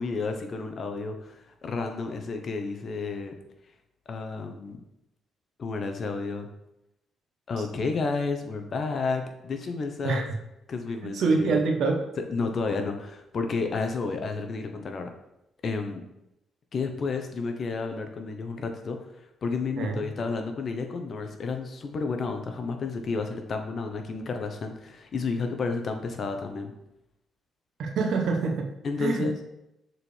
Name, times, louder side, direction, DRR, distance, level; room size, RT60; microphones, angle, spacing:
voice 1, 0.0-3.3 4.1-4.8 5.6-6.5 7.5-10.2 10.7-11.6 12.3-15.1 15.6-16.0 16.7-19.0 19.4-26.7 28.8-29.4, left 4 dB, 50° left, 5 dB, 0.9 m, -31 dB
voice 2, 11.1-12.0 19.8-20.0 27.8-28.7 29.0-29.2, right 4 dB, 70° right, 3 dB, 1.0 m, -25 dB
6.6 x 4.5 x 3.4 m, 0.89 s
cardioid pair, 90°, 0 cm